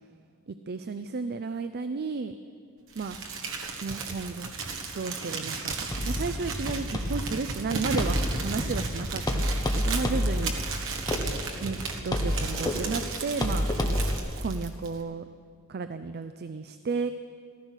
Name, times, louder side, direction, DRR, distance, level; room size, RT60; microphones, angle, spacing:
voice 1, 0.5-2.3 3.0-3.2 3.8-4.5 4.9-5.7 6.1-10.8 11.6-11.8 12.0-13.7 14.4-15.2 15.7-17.1, right 4 dB, 45° right, 11 dB, 0.5 m, -33 dB
Crumpling crinkling, 2.9-15.0, right 4 dB, 60° right, 1.5 m, -35 dB
sound 1, 5.9-14.2, left 1 dB, 20° left, 1.2 m, -30 dB
15.5 x 14.5 x 6.4 m, 2.2 s
head